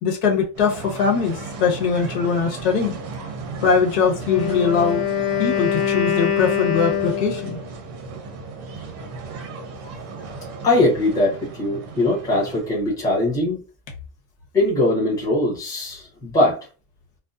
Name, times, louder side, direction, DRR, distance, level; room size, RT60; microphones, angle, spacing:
voice 1, 0.0-3.0 3.6-5.0 5.4-7.6, left 6 dB, 80° left, 0 dB, 1.1 m, -21 dB
sound 1, 0.5-12.7, right 4 dB, 35° right, 0.6 m, -36 dB
Wind instrument woodwind instrument, 4.2-7.7, left 8 dB, 50° left, 1.0 m, -24 dB
voice 2, 10.6-13.6 14.5-16.6, left 2 dB, 10° left, -6 dB, 0.6 m, -21 dB
2.6 x 2.0 x 2.3 m, 0.34 s
cardioid pair, 170°, 45 cm